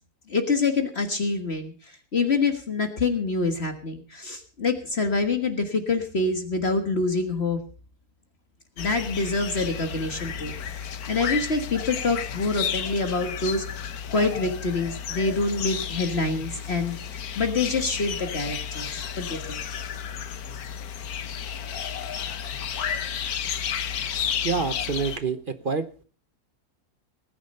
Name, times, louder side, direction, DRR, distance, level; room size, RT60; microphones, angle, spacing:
voice 1, 0.3-7.6 8.8-13.7 14.1-19.6, left 3 dB, 45° left, 6 dB, 1.7 m, -26 dB
sound 1, 8.8-25.2, left 8 dB, 75° left, 1.5 m, -32 dB
voice 2, 24.4-25.9, right 5 dB, 40° right, 12 dB, 0.9 m, -27 dB
19.0 x 10.0 x 5.4 m, 0.39 s
omnidirectional pair, 1.6 m